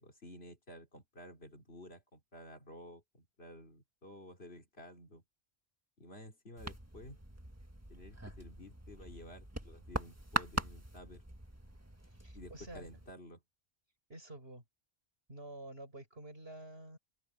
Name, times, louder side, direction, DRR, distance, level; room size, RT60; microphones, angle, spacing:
voice 1, 0.0-5.2 6.0-7.2 7.9-11.2 12.3-13.4, left 1 dB, 75° left, 3.7 m, -53 dB
sound 1, 6.6-13.1, right 1 dB, 15° right, 1.7 m, -42 dB
voice 2, 12.1-12.9 14.1-14.6 15.3-17.0, right 1 dB, 70° right, 7.5 m, -49 dB
open air
omnidirectional pair, 1.1 m